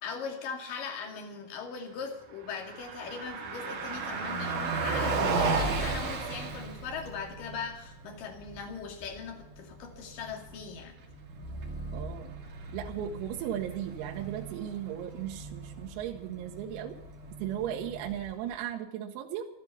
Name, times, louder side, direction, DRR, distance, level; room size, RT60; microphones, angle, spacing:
voice 1, 0.0-11.0, left 5 dB, 50° left, 2 dB, 3.3 m, -40 dB
Car passing by, 2.4-18.5, right 4 dB, 45° right, 3.0 m, -36 dB
voice 2, 11.9-12.3 12.7-17.0 17.4-19.5, right 10 dB, 85° right, 2 dB, 3.9 m, -36 dB
13.5 x 13.0 x 6.9 m, 0.93 s
omnidirectional pair, 6.0 m